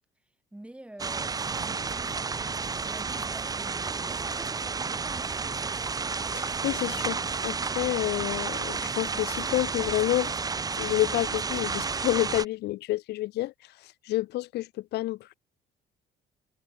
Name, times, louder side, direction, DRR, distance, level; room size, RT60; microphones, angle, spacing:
voice 1, 0.5-2.4 2.9-5.4, right 1 dB, 5° right, 5.8 m, -47 dB
sound 1, 1.0-12.4, right 5 dB, 20° right, 0.8 m, -31 dB
sound 2, 1.3-5.7, right 17 dB, 80° right, 6.9 m, -55 dB
voice 2, 6.3-10.3 10.8-13.5 14.1-15.3, left 17 dB, 75° left, 1.3 m, -29 dB
cardioid pair, 110°, 17 cm